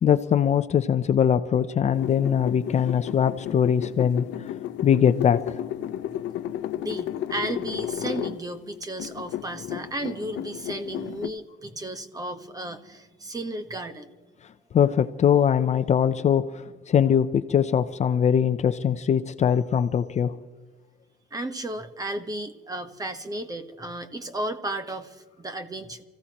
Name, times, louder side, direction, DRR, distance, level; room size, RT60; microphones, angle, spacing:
voice 1, 0.0-4.3 4.8-5.6 14.7-20.4, left 8 dB, 40° left, 11 dB, 0.6 m, -22 dB
sound 1, 1.9-8.4 8.8-11.3, left 11 dB, 85° left, 0.8 m, -33 dB
voice 2, 6.7-14.1 21.3-26.0, right 1 dB, 20° right, 9 dB, 1.2 m, -34 dB
29.5 x 15.5 x 3.0 m, 1.2 s
cardioid pair, 130°, 18 cm